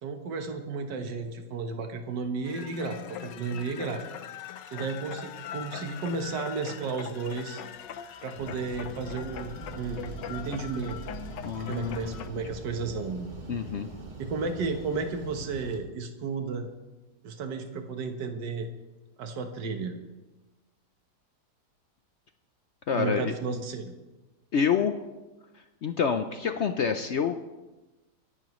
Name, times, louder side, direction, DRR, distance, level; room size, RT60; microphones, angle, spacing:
voice 1, 0.0-4.0 4.7-7.6 8.2-11.0 11.6-13.3 14.2-16.7 17.2-18.7 19.2-20.0 22.9-23.9, right 4 dB, 80° right, 5 dB, 1.8 m, -33 dB
sound 1, 2.4-12.3, left 9 dB, 85° left, 1.4 m, -42 dB
sound 2, 5.4-5.5 5.6-13.9, right 3 dB, 5° left, 3.8 m, -48 dB
sound 3, 8.4-15.8, right 2 dB, 30° right, 1.4 m, -43 dB
voice 2, 11.4-12.2 13.5-13.9 22.9-23.3 24.5-25.1 25.8-27.5, left 6 dB, 65° left, 8 dB, 0.6 m, -27 dB
24.5 x 11.0 x 3.1 m, 1.1 s
omnidirectional pair, 1.9 m